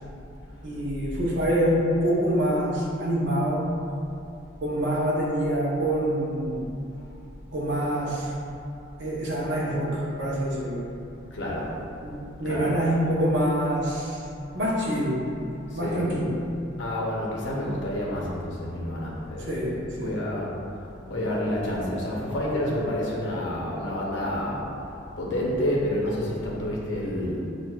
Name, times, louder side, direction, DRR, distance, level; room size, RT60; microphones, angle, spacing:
voice 1, 0.6-3.8 4.6-6.7 7.5-8.4 9.0-10.9 12.0-14.2 14.5-15.3 15.7-16.5 19.5-20.2, equal, 60° right, -6 dB, 0.8 m, -26 dB
voice 2, 11.3-11.7 12.4-12.9 15.7-16.1 16.8-19.6 20.0-20.5 21.1-24.6 25.2-27.4, left 1 dB, 65° left, -4 dB, 0.7 m, -29 dB
5.9 x 2.5 x 2.3 m, 2.7 s
head